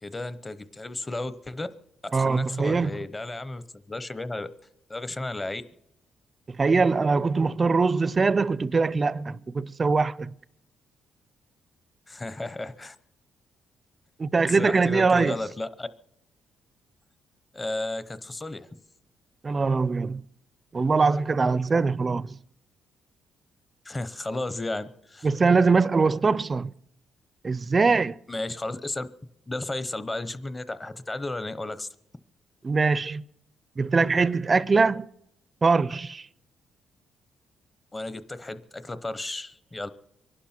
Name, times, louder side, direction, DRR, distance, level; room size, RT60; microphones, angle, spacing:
voice 1, 0.0-1.7 2.0-4.5 4.9-5.6 12.1-13.0 14.5-15.9 17.5-18.8 23.8-25.3 28.3-29.1 29.5-31.9 37.9-39.9, left 2 dB, 20° left, 0.9 m, -33 dB
voice 2, 2.1-2.9 6.6-10.3 14.2-15.4 19.4-20.2 20.7-22.4 25.2-26.7 27.4-28.2 32.6-33.2 33.8-35.1 35.6-36.3, right 4 dB, 30° right, 0.5 m, -22 dB
24.5 x 11.5 x 4.4 m
cardioid pair, 90°, 0 cm